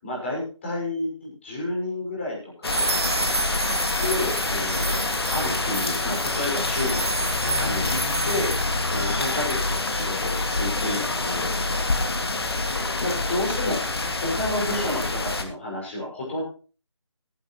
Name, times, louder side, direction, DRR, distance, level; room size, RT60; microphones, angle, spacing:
voice 1, 0.0-2.8 4.0-8.0 8.2-8.5 8.9-11.5 13.0-13.9 14.2-16.4, left 2 dB, 25° left, -3 dB, 5.8 m, -30 dB
sound 1, 2.6-15.4, left 2 dB, 55° left, 2.2 m, -26 dB
sound 2, 2.7-13.1, right 3 dB, 60° right, 1.9 m, -33 dB
15.0 x 14.5 x 3.1 m, 0.37 s
figure-of-eight pair, 170°, 16 cm